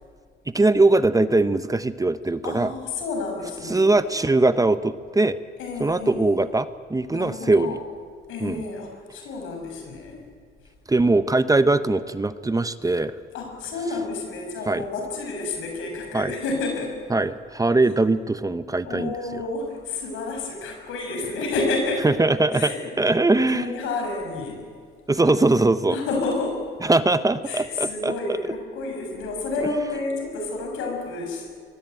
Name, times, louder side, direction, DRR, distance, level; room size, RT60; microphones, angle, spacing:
voice 1, 0.5-2.7 3.7-5.4 5.8-7.8 8.4-8.6 10.9-13.1 14.7-14.8 16.1-16.3 17.1-19.1 22.0-22.7 23.0-23.7 25.1-26.0 26.8-28.1, right 2 dB, 15° right, 12 dB, 0.9 m, -21 dB
voice 2, 2.4-3.9 5.6-6.3 7.1-7.8 8.3-10.2 13.3-17.0 18.9-22.1 22.5-22.8 23.5-24.6 25.9-26.6 27.5-31.6, left 3 dB, 90° left, 2 dB, 6.8 m, -30 dB
25.0 x 21.0 x 9.1 m, 2.1 s
cardioid pair, 90°, 20 cm